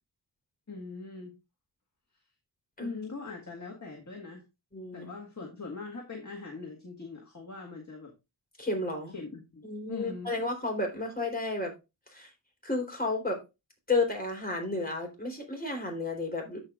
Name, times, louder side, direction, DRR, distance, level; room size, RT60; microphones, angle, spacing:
voice 1, 0.7-1.4 2.8-4.4 4.9-8.1 9.1-10.3, left 3 dB, 35° left, 1.8 m, -41 dB
voice 2, 4.7-5.1 8.6-9.1 9.6-11.7 12.1-12.3 12.6-13.4 13.9-16.6, left 2 dB, 20° left, 3.7 m, -32 dB
13.5 x 5.1 x 2.5 m
wide cardioid pair, 65°, 47 cm